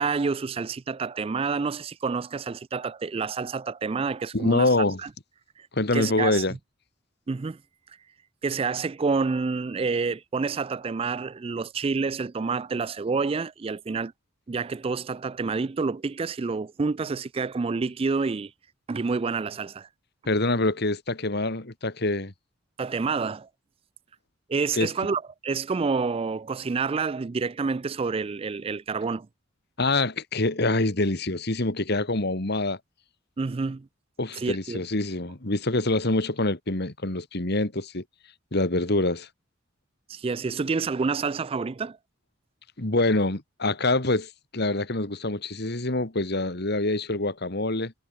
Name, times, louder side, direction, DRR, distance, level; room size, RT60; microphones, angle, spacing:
voice 1, 0.0-4.7 5.0-5.1 5.6-5.7 5.9-6.4 7.3-7.6 8.4-14.1 14.5-18.5 18.9-19.9 22.8-23.5 24.5-29.3 33.4-33.9 34.4-34.8 40.1-42.0, right 4 dB, 30° right, 0.3 m, -28 dB
voice 2, 4.3-5.0 5.7-6.5 20.3-22.3 24.7-24.9 29.8-32.8 34.2-38.0 38.5-39.3 42.8-47.9, left 2 dB, 55° left, 2.1 m, -25 dB
head